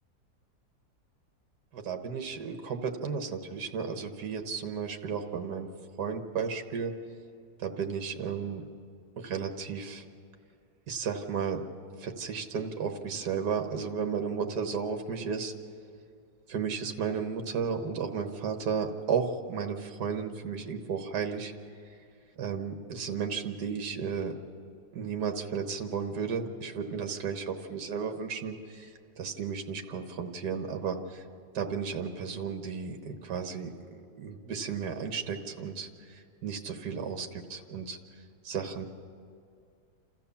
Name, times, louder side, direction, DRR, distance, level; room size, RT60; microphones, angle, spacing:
voice 1, 1.7-5.7 6.0-6.9 7.6-8.7 9.1-10.0 10.9-11.6 12.0-15.5 16.5-21.5 22.4-24.3 24.9-31.2 31.5-38.0 38.4-38.8, right 6 dB, 70° right, 5 dB, 1.8 m, -34 dB
28.5 x 14.0 x 7.0 m, 2.3 s
omnidirectional pair, 1.8 m